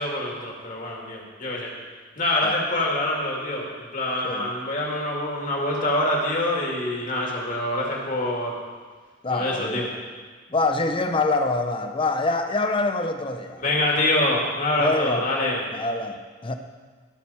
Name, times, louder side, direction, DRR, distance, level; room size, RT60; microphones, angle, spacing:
voice 1, 0.0-1.7 2.2-8.6 9.3-9.9 13.6-15.6, left 1 dB, 40° left, -2 dB, 2.3 m, -25 dB
voice 2, 9.2-9.8 10.5-13.6 14.8-15.2 15.7-16.6, left 2 dB, 25° left, 7 dB, 0.7 m, -25 dB
19.5 x 6.6 x 4.2 m, 1.5 s
head